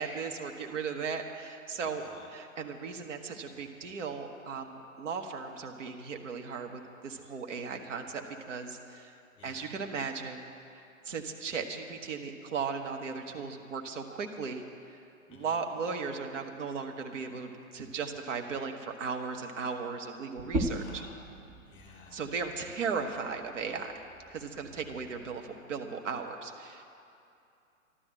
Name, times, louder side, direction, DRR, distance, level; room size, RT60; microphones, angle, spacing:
voice 1, 0.0-2.0 2.3-9.1 9.4-10.5 10.7-14.6 15.3-21.0 22.1-23.9 24.3-26.8, right 5 dB, 60° right, 3 dB, 1.7 m, -37 dB
voice 2, 1.7-2.3 9.4-9.7 15.3-15.6 20.7-21.2 21.7-22.3, left 5 dB, 10° left, 0 dB, 2.6 m, -54 dB
sound 1, 20.4-25.6, right 1 dB, 10° right, 0.4 m, -39 dB
12.5 x 12.0 x 7.7 m, 2.6 s
figure-of-eight pair, 115°, 41 cm